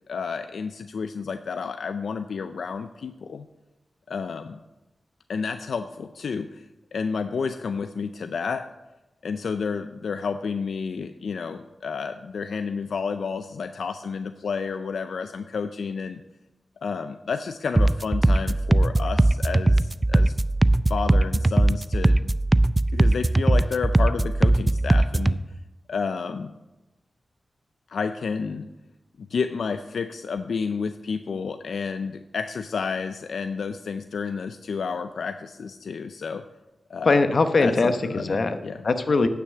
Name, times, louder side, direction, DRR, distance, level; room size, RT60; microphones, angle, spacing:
voice 1, 0.1-3.5 4.1-4.6 5.3-8.7 9.2-16.2 16.8-20.3 20.9-22.4 22.9-25.4 25.9-26.5 27.9-28.7 29.2-36.5 36.9-37.2 37.6-38.8, left 5 dB, 80° left, 9 dB, 0.4 m, -30 dB
sound 1, 17.8-25.4, right 1 dB, 20° right, 0.3 m, -20 dB
voice 2, 37.0-38.6 38.8-39.3, left 3 dB, 55° left, 9 dB, 0.9 m, -21 dB
9.6 x 5.9 x 7.6 m, 1.0 s
wide cardioid pair, 75°, 0 cm